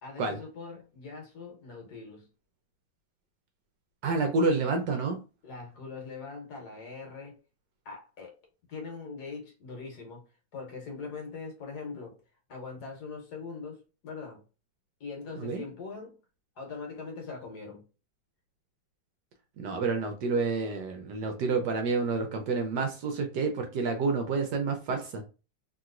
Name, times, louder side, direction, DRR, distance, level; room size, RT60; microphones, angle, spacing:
voice 1, 0.0-2.3 5.4-7.4 7.8-8.3 8.7-10.2 10.5-12.2 12.5-14.4 15.0-16.2 16.6-17.8, left 4 dB, 60° left, 1.4 m, -41 dB
voice 2, 4.0-5.2 15.4-15.6 19.6-25.2, right 4 dB, 70° right, 1.1 m, -29 dB
3.0 x 2.9 x 2.4 m
omnidirectional pair, 2.1 m